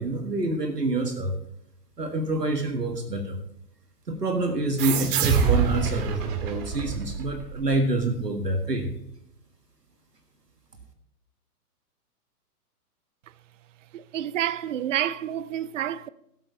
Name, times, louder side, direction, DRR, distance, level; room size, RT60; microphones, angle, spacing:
voice 1, 0.0-1.4 2.0-3.4 4.1-8.9, right 2 dB, 85° right, 1.7 m, -27 dB
sound 1, 4.8-8.0, right 6 dB, 35° right, 2.1 m, -26 dB
voice 2, 13.9-16.1, right 11 dB, 55° right, 0.7 m, -29 dB
16.5 x 8.3 x 4.3 m
figure-of-eight pair, 120°, 47 cm